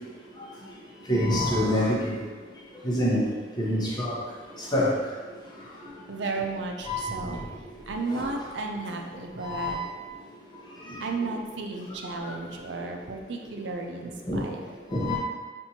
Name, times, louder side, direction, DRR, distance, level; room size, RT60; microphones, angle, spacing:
voice 1, 1.1-2.2 2.8-3.3 3.6-4.2 4.7-4.9 6.9-7.4 8.1-8.3 9.4-9.8 12.2-12.3 14.3-14.4 14.9-15.2, left 1 dB, 25° left, -5 dB, 0.8 m, -26 dB
voice 2, 6.1-7.4 7.9-9.8 11.0-14.7, right 3 dB, 85° right, 2 dB, 0.5 m, -33 dB
5.7 x 2.6 x 2.8 m, 1.5 s
head